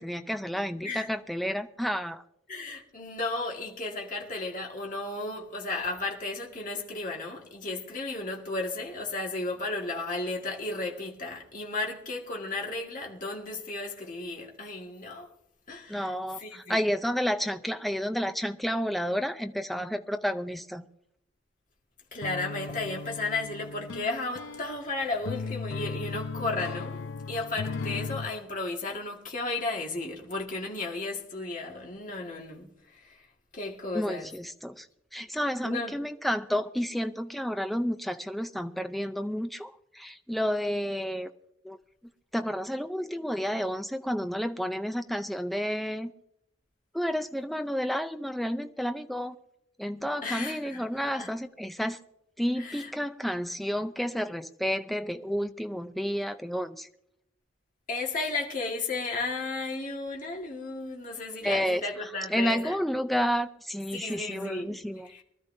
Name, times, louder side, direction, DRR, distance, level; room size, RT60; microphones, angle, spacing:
voice 1, 0.0-2.2 15.9-20.8 33.9-34.9 35.1-41.3 41.6-41.8 42.3-46.1 46.9-49.4 49.8-52.0 52.4-56.9 61.4-65.2, equal, ahead, 0.4 m, -31 dB
voice 2, 2.5-15.3 15.7-16.8 22.1-27.0 27.3-32.7 32.9-33.2 33.5-34.3 35.6-35.9 50.2-51.3 52.6-52.9 57.9-62.8 63.9-64.8 65.0-65.2, left 3 dB, 40° left, 1.8 m, -34 dB
sound 1, 22.2-28.3, left 4 dB, 75° left, 0.5 m, -36 dB
23.5 x 12.5 x 2.7 m
head